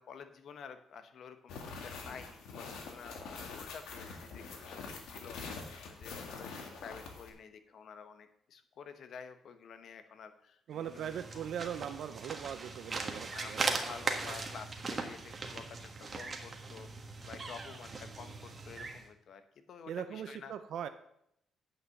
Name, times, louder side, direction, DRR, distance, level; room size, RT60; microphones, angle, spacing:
voice 1, 0.0-4.8 5.1-11.5 13.3-19.4 19.7-20.5, left 6 dB, 65° left, 9 dB, 1.1 m, -50 dB
sound 1, 1.5-7.3, left 4 dB, 85° left, 1.8 m, -45 dB
voice 2, 10.7-13.8 19.9-20.9, right 9 dB, 70° right, 9 dB, 0.6 m, -40 dB
sound 2, 10.8-19.1, right 3 dB, 35° right, 1.5 m, -39 dB
9.1 x 5.6 x 7.0 m, 0.75 s
cardioid pair, 90°, 0 cm